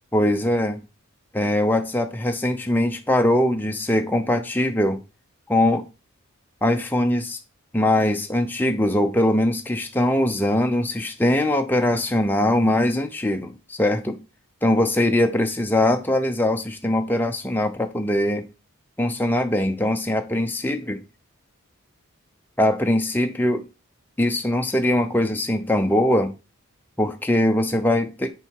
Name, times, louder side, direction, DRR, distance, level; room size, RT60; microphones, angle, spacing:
voice 1, 0.1-0.8 1.3-5.0 5.5-5.8 6.6-7.4 7.7-14.2 14.6-18.5 19.0-21.0 22.6-23.7 24.2-26.3 27.0-28.3, left 1 dB, 10° left, 0.6 m, -21 dB
6.8 x 4.6 x 4.6 m
head